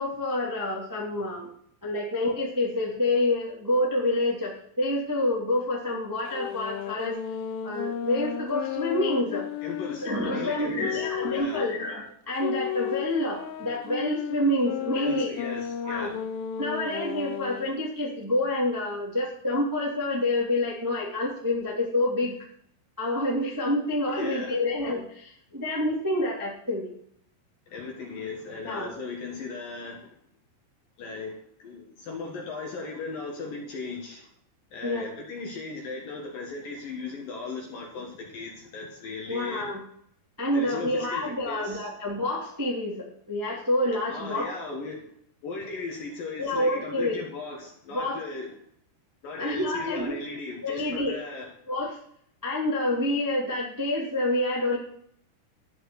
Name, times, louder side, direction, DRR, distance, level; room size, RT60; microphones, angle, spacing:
voice 1, 0.0-1.5 1.8-7.2 7.6-9.5 10.0-15.3 15.8-16.1 16.6-22.4 23.0-26.9 28.6-28.9 34.8-35.0 39.3-39.8 40.4-44.5 46.4-47.2 47.9-48.2 49.4-50.1 50.6-51.1 51.7-51.9 52.4-54.8, left 1 dB, 5° right, -4 dB, 1.5 m, -28 dB
sound 1, 6.3-11.8 12.4-17.7, left 10 dB, 80° left, 3.2 m, -34 dB
voice 2, 9.6-11.7 14.9-16.2 24.2-24.6 27.7-30.1 31.0-34.3 34.7-39.7 40.5-41.9 44.1-45.1 45.4-48.6 49.2-51.5, left 3 dB, 55° left, 0 dB, 2.8 m, -37 dB
13.5 x 6.3 x 7.9 m, 0.66 s
omnidirectional pair, 5.8 m